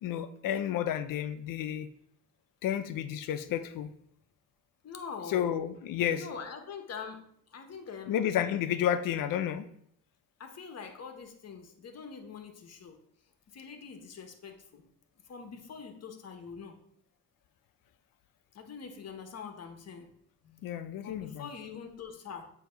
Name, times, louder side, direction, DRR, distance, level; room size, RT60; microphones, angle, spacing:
voice 1, 0.0-1.9 2.6-3.9 5.3-6.3 8.1-9.6 20.6-21.5, left 10 dB, 75° left, 11 dB, 0.6 m, -31 dB
voice 2, 4.8-5.5 6.1-8.2 10.4-13.0 13.5-14.8 15.3-16.8 18.5-20.1 20.4-22.5, left 6 dB, 50° left, 6 dB, 1.1 m, -44 dB
7.6 x 2.9 x 5.2 m, 0.68 s
cardioid pair, 85°, 33 cm